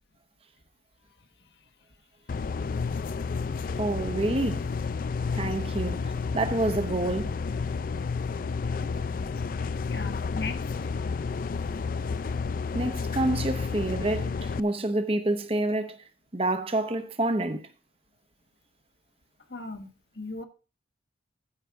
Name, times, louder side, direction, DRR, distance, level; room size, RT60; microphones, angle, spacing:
voice 1, 1.2-1.7 2.4-2.5 7.7-7.8 9.9-10.9 19.5-20.4, left 3 dB, 65° left, 1.2 m, -39 dB
sound 1, 2.3-14.6, left 5 dB, 50° left, 0.4 m, -31 dB
voice 2, 3.8-4.7 5.3-7.3 8.8-8.9 12.7-16.0 16.3-17.7, right 2 dB, 30° right, 0.9 m, -28 dB
14.5 x 5.0 x 4.6 m
head